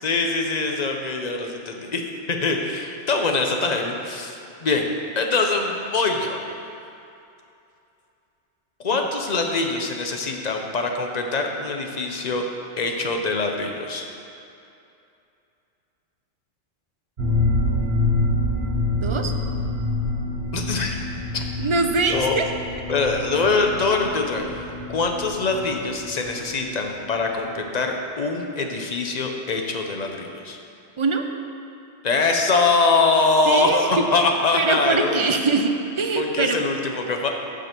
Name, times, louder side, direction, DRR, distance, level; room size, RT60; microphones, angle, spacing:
voice 1, 0.0-2.0 2.3-4.9 5.2-6.4 8.8-12.4 12.8-14.0 20.5-21.0 21.3-21.4 22.1-22.4 22.9-24.6 24.9-30.6 32.0-35.2 36.2-37.3, left 3 dB, 40° left, 3 dB, 0.8 m, -23 dB
sound 1, 17.2-26.8 27.0-27.1 27.4-27.5, left 2 dB, 55° right, 1.6 m, -26 dB
voice 2, 19.0-19.3 21.6-22.5 31.0-31.2 33.5-34.0 34.5-36.6, right 4 dB, 40° right, 5 dB, 0.4 m, -23 dB
14.5 x 5.1 x 4.4 m, 2.6 s
omnidirectional pair, 1.2 m